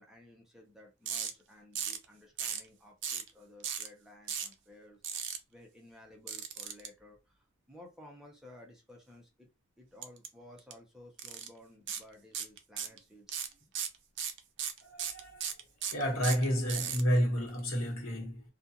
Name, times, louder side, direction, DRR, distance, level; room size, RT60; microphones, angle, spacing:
voice 1, 0.0-9.5 9.8-13.7, left 1 dB, 5° right, 0.7 m, -56 dB
sound 1, 1.1-1.3 1.8-2.1 2.4-2.7 3.0-3.3 3.6-3.9 4.3-4.5 5.0-5.4 6.3-6.9 10.0-10.3 10.6-10.7 11.2-11.5 11.9-12.0 12.3-13.0 13.3-17.0, right 8 dB, 60° right, 0.5 m, -36 dB
voice 2, 14.8-15.4 15.8-18.4, equal, 80° left, 1.1 m, -30 dB
2.4 x 2.3 x 2.7 m
head